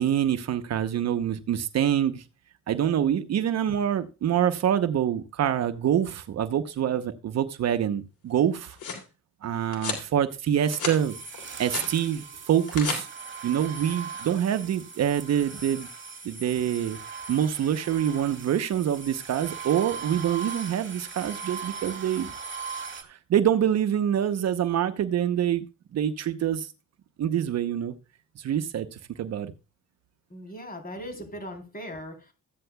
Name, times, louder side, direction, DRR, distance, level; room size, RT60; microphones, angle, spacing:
voice 1, 0.0-2.2 2.7-8.8 9.4-11.2 11.6-13.1 13.4-15.9 16.2-17.0 17.3-22.3 23.0-25.7 25.9-26.7 27.2-27.9 28.4-29.5, right 9 dB, 60° right, 0.9 m, -26 dB
sound 1, 8.4-9.1 9.7-10.1 10.5-11.0 11.3-11.9 12.5-13.0, left 5 dB, 75° left, 3.4 m, -34 dB
sound 2, 10.6-23.0, right 5 dB, 40° right, 2.0 m, -39 dB
voice 2, 30.3-32.3, equal, 30° left, 3.5 m, -39 dB
14.5 x 9.7 x 2.3 m
cardioid pair, 90°, 30 cm